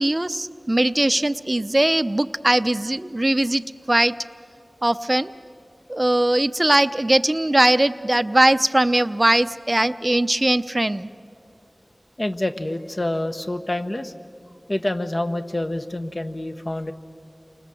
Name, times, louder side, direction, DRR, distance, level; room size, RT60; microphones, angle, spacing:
voice 1, 0.0-3.6 3.9-4.1 4.8-5.3 5.9-11.1, right 1 dB, 35° right, 12 dB, 0.6 m, -20 dB
voice 2, 12.2-14.1 14.7-16.9, left 1 dB, 40° left, 7 dB, 1.2 m, -27 dB
29.5 x 25.0 x 7.7 m, 2.4 s
wide cardioid pair, 55°, 0 cm